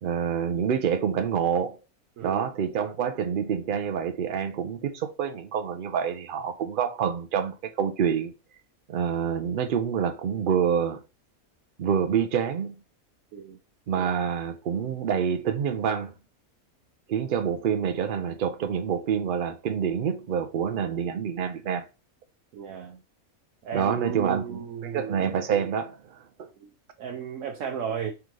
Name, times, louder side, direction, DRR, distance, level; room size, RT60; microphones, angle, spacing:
voice 1, 0.0-1.8 2.2-8.3 8.9-11.0 11.8-12.7 13.9-16.1 17.1-21.8 23.7-26.5, right 7 dB, 90° right, 0.4 m, -27 dB
voice 2, 2.2-2.5 13.3-13.6 22.5-23.0 23.6-25.2 26.6-26.7 27.0-28.1, right 8 dB, 70° right, 0.9 m, -34 dB
3.8 x 3.4 x 3.1 m
omnidirectional pair, 1.5 m